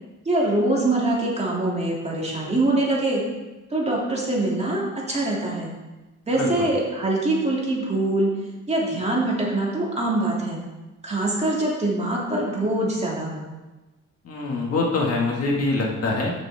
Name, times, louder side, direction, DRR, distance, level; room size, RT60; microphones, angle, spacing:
voice 1, 0.2-3.2 3.7-5.7 6.3-8.3 8.7-10.6 11.0-13.5, right 2 dB, 20° right, -4 dB, 3.0 m, -24 dB
voice 2, 14.3-16.3, left 3 dB, 50° left, -2 dB, 2.2 m, -24 dB
13.5 x 7.1 x 3.7 m, 1.1 s
cardioid pair, 110°, 31 cm